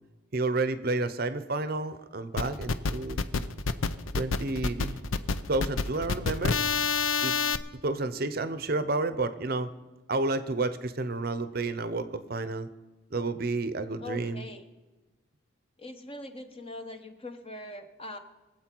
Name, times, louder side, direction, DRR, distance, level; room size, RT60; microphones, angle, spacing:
voice 1, 0.3-3.2 4.2-5.0 5.5-6.6 7.2-7.3 7.8-9.7 10.1-12.7 13.1-14.4, right 2 dB, 45° right, 12 dB, 0.7 m, -30 dB
sound 1, 2.4-7.6, left 4 dB, 80° left, 0.6 m, -28 dB
voice 2, 14.0-14.6 15.8-18.2, left 2 dB, 25° left, 7 dB, 0.9 m, -41 dB
23.0 x 8.0 x 4.5 m, 1.2 s
head